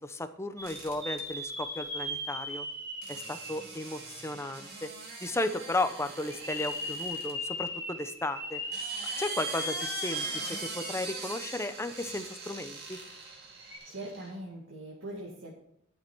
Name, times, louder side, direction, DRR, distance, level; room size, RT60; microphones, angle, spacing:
voice 1, 0.0-2.7 3.1-4.9 5.2-8.6 9.2-13.0, left 2 dB, 15° left, 9 dB, 0.7 m, -34 dB
sound 1, 0.6-4.5 5.1-5.2 6.2-11.2 11.5-11.6 13.6-13.8, equal, 15° right, 2.7 m, -38 dB
sound 2, 0.6-1.2 3.0-7.3 8.5-14.3, right 3 dB, 50° right, 2.6 m, -42 dB
voice 2, 13.8-15.5, right 1 dB, 65° right, -4 dB, 2.3 m, -41 dB
12.0 x 6.9 x 4.6 m, 0.76 s
head